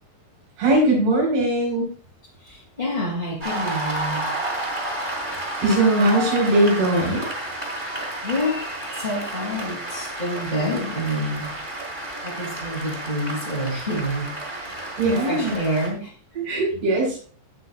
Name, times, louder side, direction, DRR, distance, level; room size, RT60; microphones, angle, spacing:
voice 1, 0.6-1.9 5.6-7.2 15.0-15.5 16.5-17.3, right 1 dB, 60° right, -2 dB, 6.8 m, -20 dB
voice 2, 2.4-4.3 7.7-8.7 8.9-11.6 12.2-14.3 14.6-16.1 16.7-16.9, equal, 15° left, -5 dB, 2.0 m, -28 dB
Cheering / Applause, 3.4-15.9, right 1 dB, 10° right, 3.0 m, -31 dB
18.5 x 6.5 x 2.4 m, 0.41 s
omnidirectional pair, 5.1 m